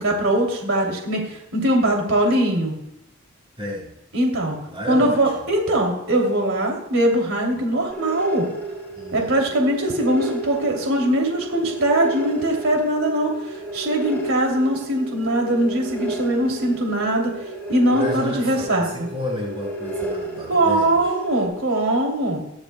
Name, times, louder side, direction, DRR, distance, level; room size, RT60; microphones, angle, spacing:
voice 1, 0.0-2.7 4.1-4.6 4.9-8.5 9.1-17.3 17.7-19.1 20.5-22.4, right 1 dB, 85° right, 0 dB, 2.9 m, -21 dB
voice 2, 3.6-3.9 4.7-5.5 8.9-9.5 17.9-21.1, left 1 dB, 25° right, -4 dB, 6.4 m, -32 dB
sound 1, 7.9-21.4, right 2 dB, 10° left, 6.2 m, -32 dB
29.0 x 12.0 x 2.2 m, 0.81 s
head